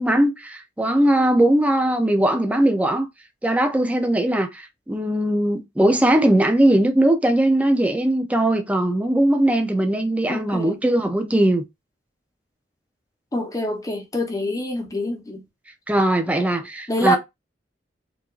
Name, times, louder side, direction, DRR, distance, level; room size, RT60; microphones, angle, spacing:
voice 1, 0.0-3.1 3.4-11.6 15.9-17.2, right 1 dB, 10° right, 0.5 m, -20 dB
voice 2, 10.3-10.8 13.3-15.4 16.9-17.2, equal, 20° left, 0.9 m, -25 dB
4.6 x 2.5 x 2.4 m
head